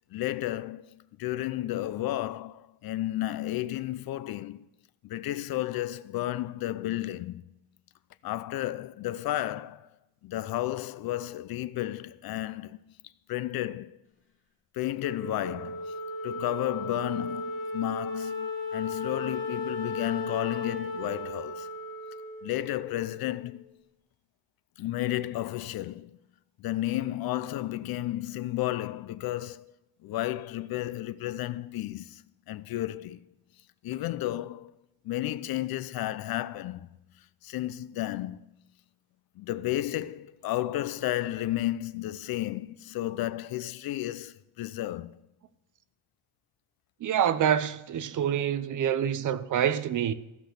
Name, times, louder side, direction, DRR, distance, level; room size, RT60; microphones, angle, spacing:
voice 1, 0.1-4.7 5.0-7.5 8.2-9.9 10.2-12.9 13.3-14.0 14.7-15.9 16.2-21.7 22.4-23.6 24.8-26.2 26.6-29.7 30.0-33.3 33.8-34.7 35.0-36.9 37.4-38.4 39.4-45.2, left 14 dB, 55° left, 0.6 m, -32 dB
Wind instrument woodwind instrument, 15.0-23.6, left 2 dB, 25° left, 3.1 m, -36 dB
voice 2, 47.0-50.1, right 9 dB, 45° right, 0.8 m, -26 dB
15.5 x 6.2 x 6.8 m
cardioid pair, 150°, 44 cm